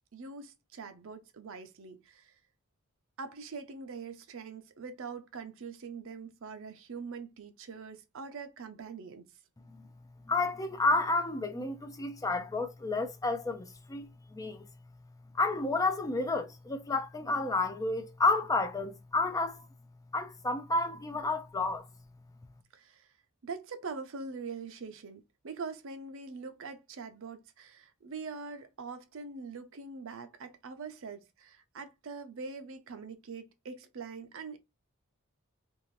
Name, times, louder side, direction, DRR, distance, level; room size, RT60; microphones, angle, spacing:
voice 1, 0.1-2.3 3.2-9.3 22.7-23.1 23.4-34.6, right 4 dB, 65° right, 0.6 m, -43 dB
voice 2, 10.3-14.7 15.3-19.7 20.1-21.9, left 3 dB, 15° left, 0.4 m, -31 dB
2.6 x 2.5 x 3.0 m
head